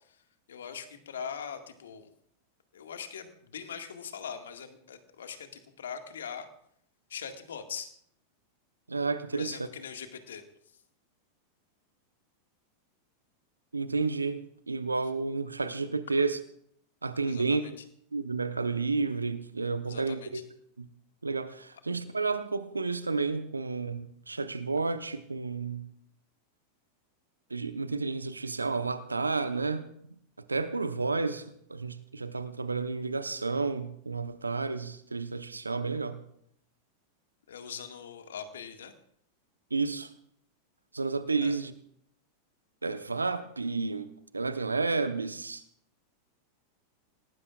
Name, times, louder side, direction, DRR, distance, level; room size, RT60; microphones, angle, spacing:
voice 1, 0.5-2.1 2.7-6.5 7.1-7.9 9.3-10.4 17.3-17.7 19.8-20.4 37.5-38.9 41.4-41.6, left 7 dB, 70° left, 1.9 m, -41 dB
voice 2, 8.9-9.6 13.7-16.4 17.0-17.6 18.1-20.4 20.8-20.9 21.2-25.9 27.5-29.8 30.5-36.2 39.7-40.1 40.9-41.7 42.8-45.6, right 4 dB, 85° right, 0.9 m, -31 dB
26.5 x 18.5 x 2.5 m
figure-of-eight pair, 90°, 0 cm